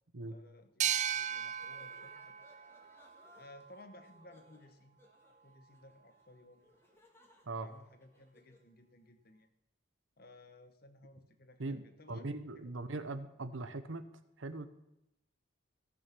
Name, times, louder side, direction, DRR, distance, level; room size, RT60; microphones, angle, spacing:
voice 1, 0.2-2.3 3.3-5.0 5.3-6.7 7.6-9.5 10.2-12.7, left 1 dB, 50° left, 8 dB, 1.2 m, -58 dB
sound 1, 0.8-4.2, right 10 dB, 35° right, 0.4 m, -37 dB
sound 2, 1.2-8.7, left 1 dB, 10° left, 1.9 m, -65 dB
voice 2, 12.1-14.1 14.4-14.7, right 2 dB, 75° right, 11 dB, 0.9 m, -40 dB
17.0 x 6.5 x 6.0 m, 0.87 s
head